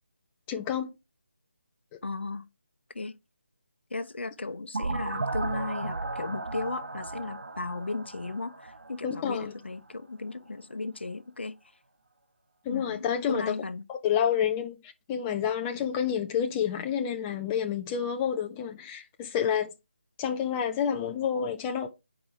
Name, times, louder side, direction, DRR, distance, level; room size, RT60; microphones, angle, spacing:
voice 1, 0.5-0.9 9.0-9.5 12.7-13.6 13.9-19.7 20.2-21.9, left 8 dB, 15° left, 0.4 m, -29 dB
voice 2, 2.0-2.4 2.9-3.2 3.9-11.6 12.7-13.8, left 3 dB, 70° left, 0.7 m, -36 dB
sound 1, 4.7-9.4, right 3 dB, 65° right, 0.7 m, -35 dB
8.6 x 4.8 x 3.4 m
figure-of-eight pair, 155°, 6 cm